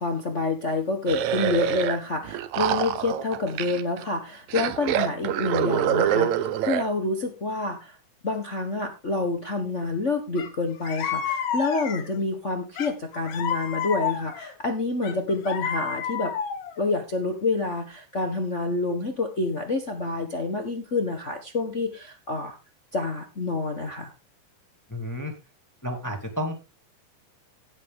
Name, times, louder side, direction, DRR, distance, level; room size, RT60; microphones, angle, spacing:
voice 1, 0.0-7.9 8.2-16.3 16.8-22.6 22.9-24.1, left 3 dB, 80° left, 4 dB, 0.6 m, -28 dB
sound 1, 1.1-2.0 2.3-4.0 4.5-6.9, right 10 dB, 70° right, 2.0 m, -25 dB
sound 2, 10.4-10.5 10.8-12.2 12.8-14.5 15.0-16.8, left 8 dB, 60° left, 1.7 m, -30 dB
voice 2, 24.9-25.3 25.8-26.7, equal, 5° left, 2 dB, 1.9 m, -31 dB
16.5 x 7.7 x 3.8 m, 0.28 s
omnidirectional pair, 4.0 m